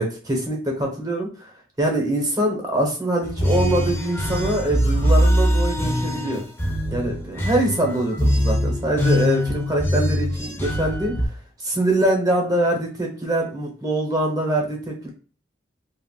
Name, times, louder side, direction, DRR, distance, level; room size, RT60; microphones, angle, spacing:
voice 1, 0.0-1.5 1.8-6.4 6.9-11.1 11.6-15.1, right 1 dB, 20° right, 0 dB, 0.8 m, -23 dB
sound 1, 3.2-11.3, equal, 10° left, 0.4 m, -22 dB
3.6 x 2.4 x 2.2 m, 0.37 s
head